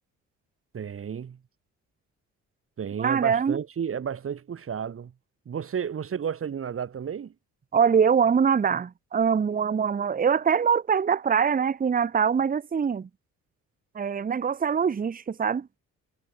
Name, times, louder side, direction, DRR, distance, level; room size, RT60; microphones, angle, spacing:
voice 1, 0.7-1.4 2.8-5.1 5.5-7.3, right 7 dB, 45° right, 2.3 m, -32 dB
voice 2, 3.0-3.6 7.7-13.1 13.9-15.7, right 7 dB, 30° right, 0.9 m, -23 dB
cardioid pair, 90°, 30 cm